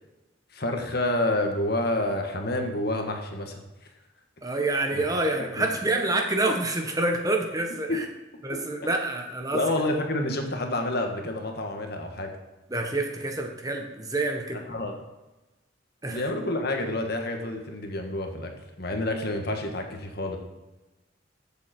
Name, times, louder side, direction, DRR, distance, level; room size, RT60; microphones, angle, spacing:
voice 1, 0.5-3.6 4.9-5.0 5.6-5.7 7.9-8.0 9.5-12.3 14.7-14.9 16.1-18.5 18.8-20.4, left 1 dB, 55° left, 4 dB, 1.7 m, -28 dB
voice 2, 4.4-8.0 8.4-9.6 12.7-14.6 16.0-16.3, right 2 dB, 20° right, 3 dB, 1.3 m, -27 dB
14.5 x 7.8 x 4.5 m, 1.1 s
head